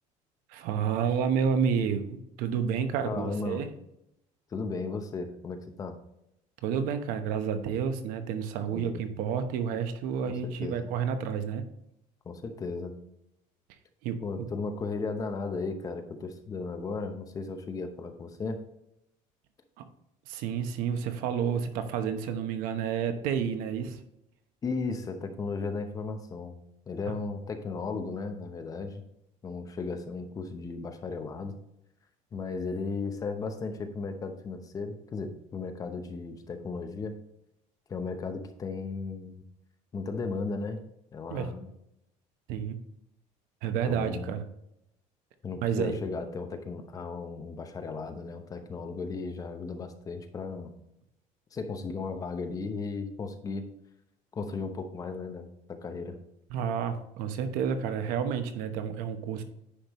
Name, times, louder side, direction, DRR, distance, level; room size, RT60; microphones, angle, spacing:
voice 1, 0.5-3.7 6.6-11.7 14.0-14.2 19.8-19.9 20.3-24.0 41.3-41.5 42.5-42.8 43.6-44.4 45.6-46.0 56.5-59.4, right 7 dB, 80° right, 8 dB, 1.0 m, -30 dB
voice 2, 3.0-3.7 4.5-6.0 8.7-9.0 10.4-10.9 12.2-12.9 14.2-18.6 24.6-26.6 26.9-29.0 29.4-31.6 32.3-37.1 37.9-39.4 39.9-40.8 41.1-41.7 43.9-44.3 45.4-50.7 51.5-53.6 54.3-56.2, left 4 dB, 25° left, 6 dB, 0.8 m, -35 dB
9.9 x 5.3 x 3.1 m, 0.81 s
cardioid pair, 155°, 14 cm